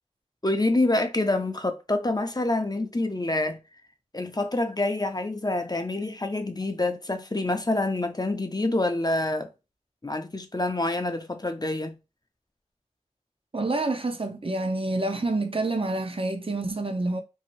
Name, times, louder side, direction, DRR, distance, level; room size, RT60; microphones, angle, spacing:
voice 1, 0.4-3.6 4.1-9.5 10.0-12.0, left 2 dB, 30° left, 0.5 m, -27 dB
voice 2, 13.5-17.2, right 2 dB, 45° right, 0.5 m, -27 dB
2.7 x 2.5 x 3.0 m
wide cardioid pair, 45°, 13 cm